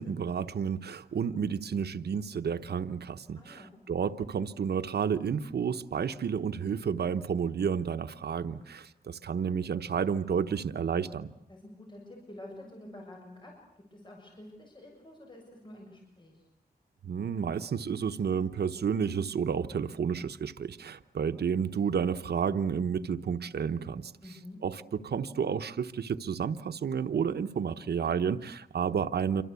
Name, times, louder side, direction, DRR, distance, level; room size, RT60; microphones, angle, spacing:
voice 1, 0.0-11.3 17.0-29.4, right 7 dB, 85° right, 11 dB, 1.0 m, -31 dB
voice 2, 3.3-3.8 11.5-13.6 13.9-16.3 24.2-24.6, left 1 dB, 30° left, 0 dB, 7.2 m, -48 dB
28.0 x 24.5 x 8.3 m, 0.72 s
wide cardioid pair, 110°, 16 cm